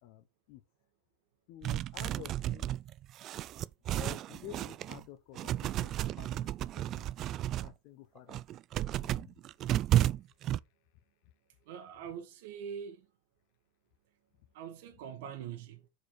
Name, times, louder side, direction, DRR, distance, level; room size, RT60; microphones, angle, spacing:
voice 1, 0.0-0.6 1.5-2.7 3.9-7.1 7.6-8.4 9.0-9.3 11.2-11.3, left 12 dB, 60° left, 0.9 m, -50 dB
sound 1, 1.6-5.0 5.4-7.7 8.2-10.6, right 13 dB, 40° right, 0.3 m, -32 dB
voice 2, 11.7-13.0 14.5-15.9, right 8 dB, 75° right, 1.4 m, -43 dB
6.5 x 4.9 x 4.7 m
supercardioid pair, 135°, 0 cm